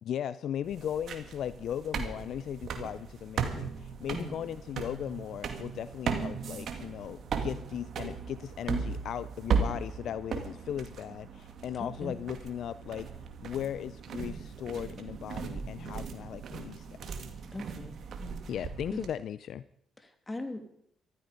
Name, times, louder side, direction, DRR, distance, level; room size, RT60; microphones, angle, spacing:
voice 1, 0.0-13.1 13.4-16.9 18.5-19.6, left 10 dB, 70° left, 16 dB, 0.5 m, -37 dB
sound 1, 0.6-19.1, right 6 dB, 65° right, 2.2 m, -37 dB
voice 2, 11.8-12.1 17.5-18.4 18.9-19.0 20.0-20.6, left 1 dB, 20° left, 6 dB, 2.8 m, -40 dB
14.5 x 14.0 x 5.3 m, 0.70 s
supercardioid pair, 60°, 0 cm